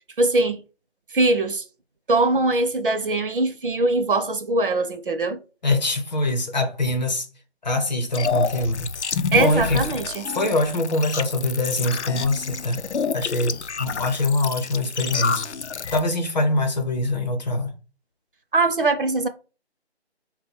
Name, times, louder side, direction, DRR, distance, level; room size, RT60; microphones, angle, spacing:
voice 1, 0.2-0.6 1.1-1.6 2.1-5.4 9.3-10.2 18.5-19.3, right 2 dB, 55° right, 0.6 m, -21 dB
voice 2, 5.6-7.3 7.6-10.0 10.3-12.8 13.1-15.4 15.9-17.7, left 2 dB, 40° left, 0.8 m, -24 dB
sound 1, 8.1-16.0, left 6 dB, 90° left, 0.5 m, -28 dB
3.7 x 2.2 x 4.4 m
figure-of-eight pair, 160°, 33 cm